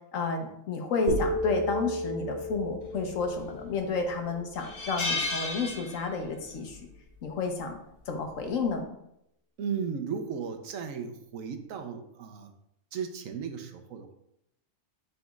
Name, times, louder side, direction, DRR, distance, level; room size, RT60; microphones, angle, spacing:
voice 1, 0.1-6.8 7.2-7.8 8.1-8.9, left 4 dB, 75° left, 4 dB, 1.3 m, -31 dB
sound 1, 1.1-5.2, equal, 35° right, 1.7 m, -33 dB
sound 2, 3.2-3.7 4.1-4.2 4.6-6.4 6.7-6.9 8.2-8.5, left 2 dB, 60° left, 1.3 m, -33 dB
voice 2, 9.6-12.5 12.9-14.1, right 6 dB, 85° right, 6 dB, 1.2 m, -35 dB
11.5 x 4.1 x 2.4 m, 0.78 s
omnidirectional pair, 1.4 m